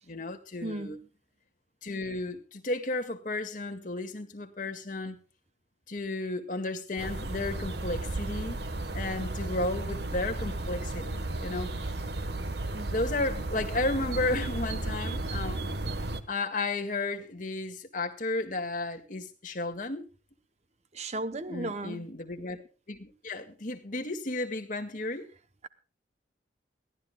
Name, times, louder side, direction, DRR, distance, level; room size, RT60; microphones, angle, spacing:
voice 1, 0.1-1.0 1.8-5.2 5.9-8.6 8.9-11.8 12.9-15.6 16.3-20.1 21.4-25.3, left 2 dB, 45° left, 2.0 m, -33 dB
voice 2, 0.6-0.9 12.7-12.9 20.9-22.1, right 2 dB, 35° right, 0.9 m, -35 dB
sound 1, 7.0-16.2, right 2 dB, 60° right, 1.4 m, -34 dB
22.0 x 16.0 x 2.3 m
head